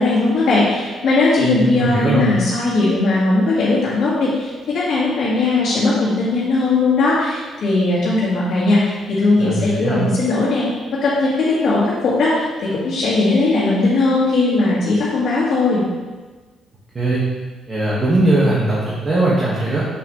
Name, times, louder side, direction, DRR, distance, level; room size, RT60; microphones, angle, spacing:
voice 1, 0.0-10.7 10.9-15.8, left 3 dB, 60° left, -9 dB, 1.8 m, -18 dB
voice 2, 1.4-2.3 9.4-10.0 16.9-17.2 17.7-19.9, right 2 dB, 35° right, -7 dB, 1.7 m, -19 dB
6.8 x 5.7 x 3.2 m, 1.3 s
cardioid pair, 90°, 0 cm